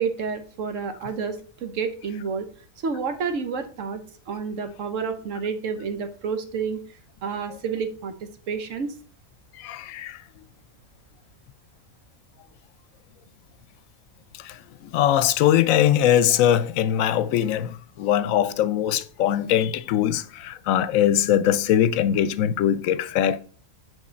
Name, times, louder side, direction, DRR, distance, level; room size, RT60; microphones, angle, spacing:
voice 1, 0.0-2.5 2.8-4.0 4.3-6.8 7.2-8.1 8.5-8.9, right 5 dB, 70° right, 1.1 m, -29 dB
voice 2, 9.6-10.2 14.4-23.4, left 10 dB, 80° left, 1.0 m, -21 dB
6.4 x 4.8 x 4.3 m
omnidirectional pair, 1.4 m